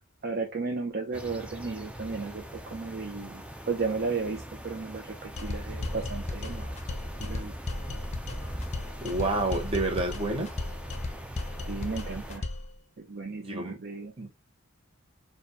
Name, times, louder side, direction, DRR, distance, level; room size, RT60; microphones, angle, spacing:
voice 1, 0.2-2.4 2.7-6.8 7.2-7.5 11.7-12.5 13.0-14.1, right 4 dB, 45° right, 0.6 m, -34 dB
sound 1, 1.1-12.4, equal, 5° right, 0.4 m, -40 dB
sound 2, 5.4-12.7, left 2 dB, 30° left, 0.7 m, -36 dB
voice 2, 9.0-10.5 13.3-13.8 14.2-14.3, right 2 dB, 25° right, 1.0 m, -29 dB
4.2 x 2.4 x 4.1 m
head